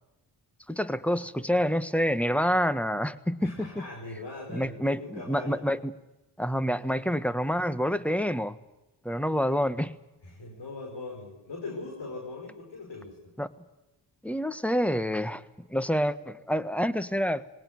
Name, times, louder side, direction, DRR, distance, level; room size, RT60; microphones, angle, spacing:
voice 1, 0.7-3.7 4.5-5.9 6.4-8.6 9.0-9.9 13.4-13.5 14.2-15.4 15.7-17.5, equal, 5° left, 13 dB, 1.4 m, -27 dB
voice 2, 3.4-5.6 10.2-13.3, left 3 dB, 70° left, 0 dB, 5.3 m, -40 dB
20.5 x 18.5 x 9.5 m, 1.0 s
cardioid pair, 60°, 44 cm